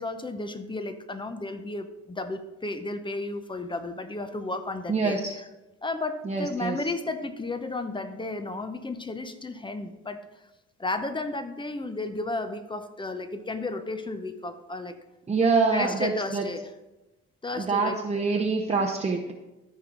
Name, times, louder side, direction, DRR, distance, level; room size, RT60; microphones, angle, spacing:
voice 1, 0.0-5.2 5.8-10.2 10.8-15.0 15.7-16.7 17.4-18.4, left 2 dB, 15° left, 9 dB, 0.8 m, -33 dB
voice 2, 4.9-5.3 6.2-6.8 15.3-16.5 17.6-19.3, right 4 dB, 20° right, 0 dB, 0.8 m, -25 dB
13.5 x 4.6 x 3.9 m, 1.0 s
cardioid pair, 90°, 30 cm